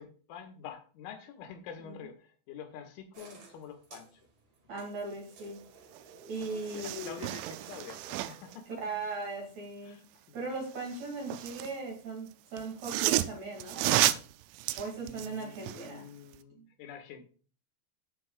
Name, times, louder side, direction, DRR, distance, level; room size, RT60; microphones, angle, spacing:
voice 1, 0.0-4.2 6.7-8.8 9.8-10.4 15.0-17.3, left 7 dB, 80° left, 5 dB, 3.4 m, -47 dB
sound 1, 3.1-8.6, right 4 dB, 65° right, 1.5 m, -55 dB
voice 2, 4.7-5.7 6.3-7.2 8.8-10.0 10.3-14.1 14.8-16.1 16.5-16.6, right 3 dB, 45° right, -1 dB, 2.8 m, -39 dB
sound 2, 5.9-6.0 6.3-8.6 10.7-11.8 12.6-15.9 16.3-16.4, right 15 dB, 85° right, 2.8 m, -32 dB
16.0 x 6.1 x 2.4 m, 0.39 s
omnidirectional pair, 5.7 m